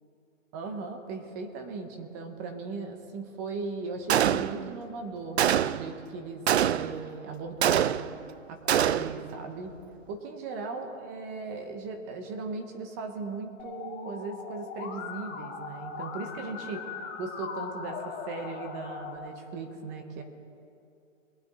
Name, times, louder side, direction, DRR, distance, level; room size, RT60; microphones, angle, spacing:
voice 1, 0.5-8.0 8.5-9.7 10.1-16.8 17.2-20.2, right 4 dB, 15° right, 6 dB, 0.7 m, -38 dB
Gunshot gunfire, 4.1-4.8 5.4-5.9 6.5-7.1 7.6-8.3 8.7-9.3, right 10 dB, 55° right, 0.5 m, -25 dB
Musical instrument, 13.6-19.2, left 5 dB, 20° left, 1.7 m, -39 dB
22.0 x 9.4 x 4.0 m, 2.5 s
hypercardioid pair, 155°, 39 cm